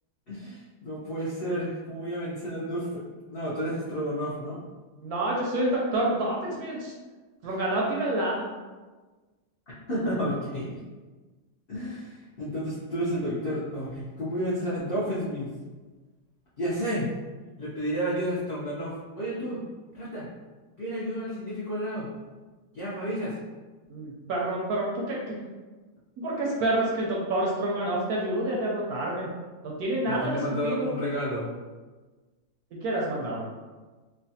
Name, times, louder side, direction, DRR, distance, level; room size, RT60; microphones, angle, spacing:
voice 1, 0.3-3.0 3.3-4.6 9.9-10.8 11.7-15.5 16.6-17.1 17.6-19.6 19.9-20.3 20.8-22.1 22.7-23.4 30.1-31.5, equal, 70° left, -9 dB, 0.5 m, -31 dB
voice 2, 5.0-6.9 7.4-8.4 23.9-25.3 26.2-29.3 29.6-30.9 32.7-33.4, right 1 dB, 70° right, -3 dB, 0.9 m, -28 dB
3.1 x 2.2 x 2.7 m, 1.3 s
omnidirectional pair, 1.9 m